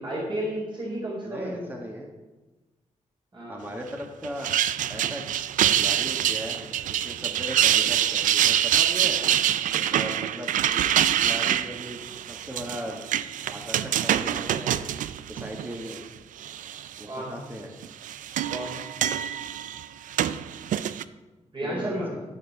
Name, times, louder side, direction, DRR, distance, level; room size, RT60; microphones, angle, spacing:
voice 1, 0.0-1.6 3.3-3.7 17.1-17.4 18.5-18.8 21.5-22.1, equal, 40° right, -4 dB, 3.6 m, -32 dB
voice 2, 1.2-2.1 3.5-4.5 4.9-5.3 5.7-9.2 9.9-10.8 11.2-13.0 13.5-14.7 15.3-16.0 17.0-17.7 21.6-22.2, equal, 15° right, 0 dB, 1.5 m, -38 dB
sound 1, 4.2-16.0 16.4-17.0 17.8-21.0, right 11 dB, 85° right, 0.4 m, -25 dB
13.5 x 5.5 x 5.3 m, 1.2 s
cardioid pair, 65°, 13 cm